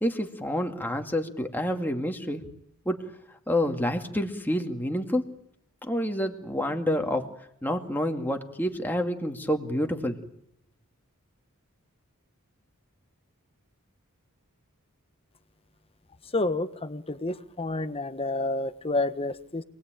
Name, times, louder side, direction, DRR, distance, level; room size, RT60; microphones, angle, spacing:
voice 1, 0.0-2.4 2.9-3.0 3.5-5.2 5.8-7.3 7.6-10.2, equal, 10° left, 3 dB, 2.2 m, -28 dB
voice 2, 16.3-19.6, left 2 dB, 25° left, 11 dB, 1.3 m, -29 dB
27.5 x 20.5 x 9.1 m, 0.73 s
head